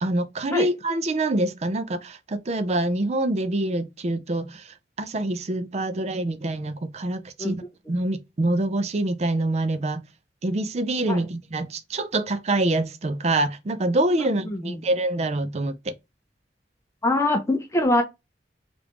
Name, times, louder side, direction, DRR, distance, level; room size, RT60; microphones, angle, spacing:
voice 1, 0.0-7.5 7.9-10.0 10.4-15.9, right 2 dB, 40° right, 0.4 m, -25 dB
voice 2, 17.0-18.0, left 1 dB, 15° left, 0.5 m, -23 dB
3.1 x 2.5 x 3.3 m
head